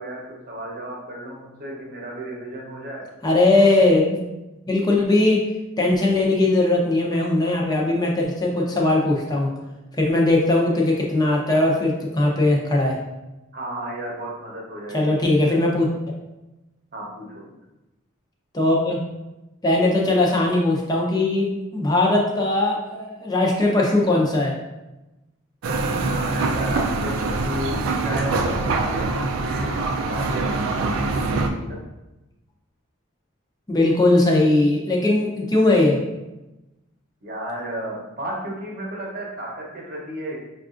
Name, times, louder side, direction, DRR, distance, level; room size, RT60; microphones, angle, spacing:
voice 1, 0.0-3.0 3.5-3.7 13.5-15.6 16.9-17.4 25.9-29.1 29.4-30.6 31.0-31.8 37.2-40.5, right 1 dB, 45° right, -3 dB, 0.9 m, -33 dB
voice 2, 3.2-4.2 4.7-5.4 5.8-9.5 10.0-13.0 14.9-15.9 18.5-19.0 19.6-24.5 33.7-36.0, left 2 dB, 20° left, -2 dB, 0.6 m, -19 dB
sound 1, 25.6-31.5, right 3 dB, 85° right, 0.4 m, -24 dB
5.2 x 2.4 x 2.5 m, 1.0 s
head